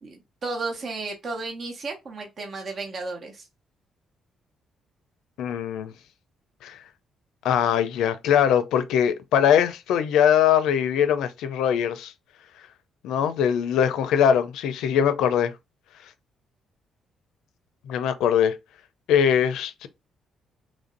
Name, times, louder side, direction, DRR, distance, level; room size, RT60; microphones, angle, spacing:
voice 1, 0.0-3.5, right 3 dB, 45° right, 1.0 m, -33 dB
voice 2, 5.4-5.9 6.6-6.8 7.4-12.1 13.0-15.5 17.9-18.6 19.1-19.9, left 8 dB, 85° left, 0.5 m, -21 dB
3.2 x 2.6 x 3.9 m
cardioid pair, 90°, 0 cm